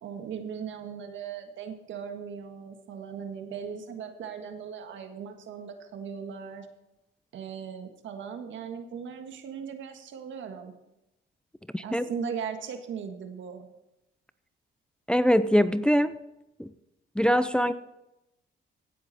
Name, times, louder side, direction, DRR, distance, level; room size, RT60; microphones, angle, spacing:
voice 1, 0.0-6.7 7.3-10.7 11.8-13.7, right 7 dB, 75° right, 6 dB, 1.6 m, -38 dB
voice 2, 11.7-12.0 15.1-16.1 16.6-16.7 17.2-17.7, equal, 5° left, 13 dB, 0.5 m, -23 dB
16.5 x 7.8 x 4.2 m, 0.90 s
cardioid pair, 90°, 20 cm